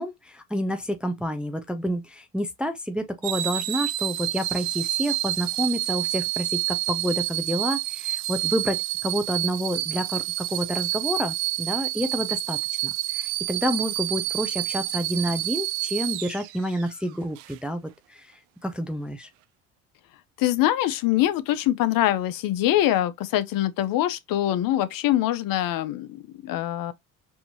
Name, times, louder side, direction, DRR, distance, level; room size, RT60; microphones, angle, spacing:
voice 1, 0.0-10.2 10.5-18.3 18.6-19.3, equal, 5° right, 0.5 m, -29 dB
sound 1, 3.2-16.9 17.4-17.5, right 17 dB, 80° right, 0.5 m, -29 dB
voice 2, 20.4-26.9, left 13 dB, 60° left, 0.7 m, -24 dB
4.5 x 2.7 x 2.7 m
supercardioid pair, 80°, 39 cm